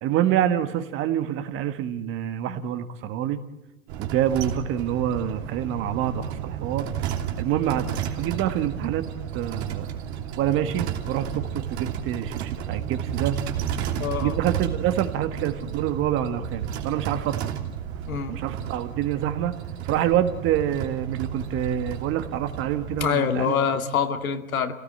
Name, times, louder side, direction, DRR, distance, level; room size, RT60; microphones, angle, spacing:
voice 1, 0.0-3.4 4.0-6.9 7.4-9.0 9.3-9.9 10.4-13.3 14.2-17.3 18.3-19.5 19.8-23.5, right 10 dB, 30° right, 10 dB, 1.4 m, -26 dB
sound 1, 3.9-23.1, right 9 dB, 50° right, 2.9 m, -32 dB
voice 2, 14.0-14.4 18.1-18.4 23.0-24.7, left 6 dB, 75° left, 6 dB, 2.3 m, -25 dB
27.5 x 17.5 x 8.6 m, 1.0 s
hypercardioid pair, 125°, 42 cm